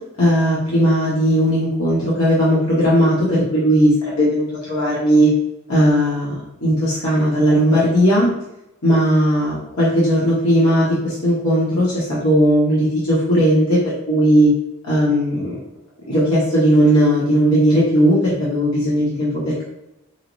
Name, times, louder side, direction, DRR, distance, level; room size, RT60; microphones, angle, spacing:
voice 1, 0.2-5.3 5.7-8.3 8.8-14.5 14.8-15.6 16.0-19.6, equal, 80° left, -8 dB, 1.4 m, -17 dB
4.8 x 2.6 x 3.1 m, 0.87 s
head